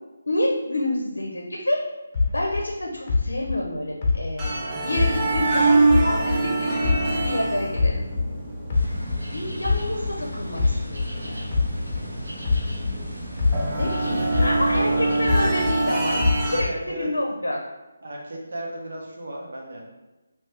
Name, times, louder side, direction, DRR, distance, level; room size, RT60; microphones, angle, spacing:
voice 1, 0.3-1.8 2.3-4.4 4.8-8.0 9.3-11.4 13.8-17.6, left 1 dB, 85° left, 0 dB, 0.6 m, -28 dB
sound 1, 2.1-5.5 5.9-8.3 8.7-13.0 13.4-15.8 16.2-16.9, left 4 dB, 35° left, 0.7 m, -25 dB
sound 2, 4.4-16.6, right 2 dB, 15° right, 0.6 m, -26 dB
sound 3, 8.7-15.7, right 1 dB, 85° right, 1.2 m, -37 dB
voice 2, 14.1-15.1 16.5-17.1 18.0-19.8, right 1 dB, 60° right, -2 dB, 0.9 m, -35 dB
3.1 x 3.0 x 3.2 m, 1.1 s
figure-of-eight pair, 155°, 0 cm